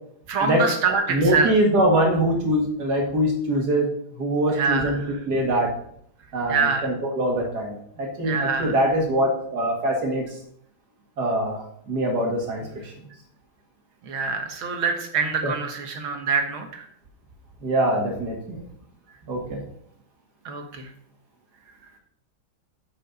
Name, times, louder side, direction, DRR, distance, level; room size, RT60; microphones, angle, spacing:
voice 1, 0.3-1.5 4.5-5.1 6.5-6.9 8.2-8.8 14.0-16.9 20.5-20.9, right 5 dB, 75° right, 4 dB, 2.0 m, -25 dB
voice 2, 1.1-3.9 4.1-5.0 5.3-5.7 6.3-10.3 11.2-12.9 15.4-15.5 17.6-18.6 19.3-19.6, right 1 dB, 50° right, 0 dB, 2.4 m, -23 dB
8.9 x 5.6 x 5.4 m, 0.68 s
omnidirectional pair, 2.3 m